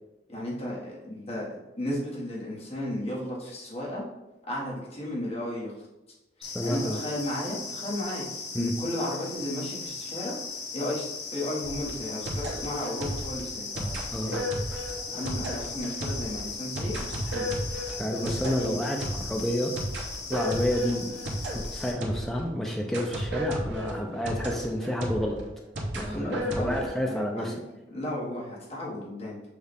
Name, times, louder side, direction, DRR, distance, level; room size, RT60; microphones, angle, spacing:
voice 1, 0.3-4.0 4.5-5.9 6.4-10.4 10.7-14.5 15.1-17.6 18.2-18.8 26.0-27.5 27.9-29.4, left 1 dB, 35° left, -5 dB, 1.3 m, -34 dB
sound 1, 6.4-21.9, left 4 dB, 70° left, 0.9 m, -38 dB
voice 2, 6.4-7.0 8.5-8.7 14.1-14.3 18.0-19.8 20.3-21.1 21.5-25.4 25.9-27.5, equal, ahead, 0 dB, 0.4 m, -30 dB
sound 2, 11.6-22.5 22.9-26.9, equal, 80° right, 0.9 m, -34 dB
6.3 x 2.4 x 3.5 m, 1.0 s
head